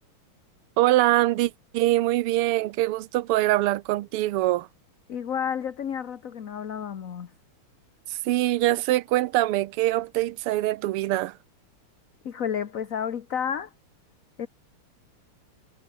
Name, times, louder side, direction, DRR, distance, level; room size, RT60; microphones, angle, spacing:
voice 1, 0.8-4.7 8.1-11.4, right 16 dB, 85° right, 1.7 m, -23 dB
voice 2, 5.1-7.3 12.2-13.7 14.4-14.5, left 8 dB, 45° left, 1.3 m, -31 dB
omnidirectional pair, 2.4 m